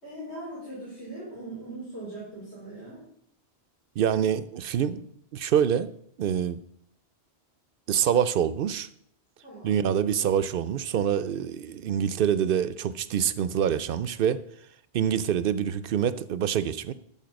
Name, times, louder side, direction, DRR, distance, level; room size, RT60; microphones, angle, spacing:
voice 1, 0.0-3.0 9.4-9.8, right 1 dB, 80° left, -8 dB, 4.7 m, -40 dB
voice 2, 4.0-5.1 5.3-6.6 7.9-8.9 9.6-14.4 14.9-16.9, right 9 dB, 60° right, 16 dB, 0.7 m, -26 dB
13.5 x 5.5 x 5.2 m, 0.68 s
omnidirectional pair, 1.1 m